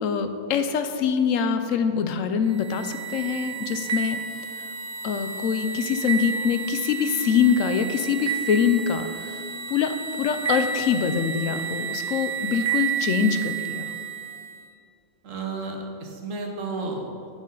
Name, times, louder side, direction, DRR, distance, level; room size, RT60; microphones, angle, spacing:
voice 1, 0.0-4.2 4.5-4.6 5.0-13.9, left 7 dB, 75° left, 8 dB, 0.9 m, -24 dB
sound 1, 2.5-14.6, right 7 dB, 35° right, 0.8 m, -31 dB
voice 2, 15.2-17.3, right 3 dB, 70° right, 2 dB, 1.4 m, -32 dB
9.5 x 6.5 x 3.8 m, 2.3 s
omnidirectional pair, 1.4 m